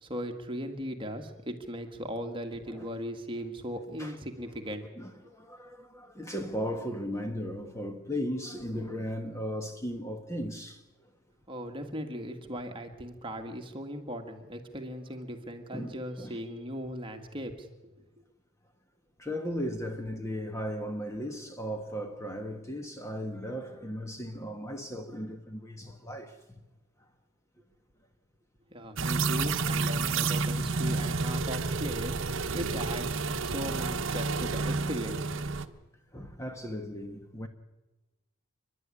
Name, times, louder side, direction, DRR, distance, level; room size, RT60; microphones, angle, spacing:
voice 1, 0.0-4.8 11.5-17.7 28.7-35.3, equal, 25° right, 2.0 m, -38 dB
voice 2, 5.0-10.8 15.7-16.4 19.2-26.6 36.1-37.5, equal, 15° left, 1.2 m, -36 dB
sound 1, 29.0-35.7, right 4 dB, 60° right, 1.0 m, -30 dB
29.5 x 11.0 x 9.9 m
head